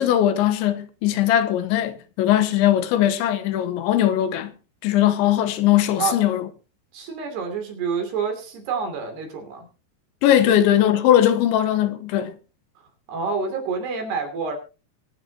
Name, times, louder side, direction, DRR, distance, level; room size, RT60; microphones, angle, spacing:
voice 1, 0.0-4.5 4.8-6.5 10.2-12.3, left 11 dB, 80° left, 3.3 m, -20 dB
voice 2, 6.9-9.7 10.5-10.6 13.1-14.6, right 5 dB, 60° right, 4.8 m, -28 dB
23.0 x 9.8 x 2.9 m
omnidirectional pair, 5.3 m